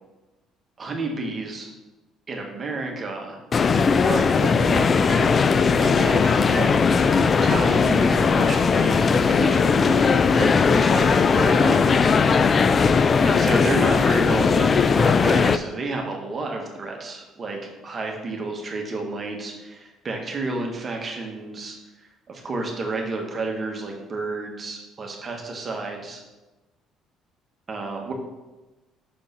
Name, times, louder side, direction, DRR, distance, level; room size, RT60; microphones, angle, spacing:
voice 1, 0.8-1.7 2.3-3.4 4.1-5.3 5.8-6.7 7.4-12.1 13.2-26.2 27.7-28.1, right 3 dB, 40° right, 1 dB, 1.2 m, -31 dB
sound 1, 3.5-15.6, left 5 dB, 40° left, 0.3 m, -18 dB
6.0 x 3.7 x 5.3 m, 1.1 s
supercardioid pair, 70°, 0 cm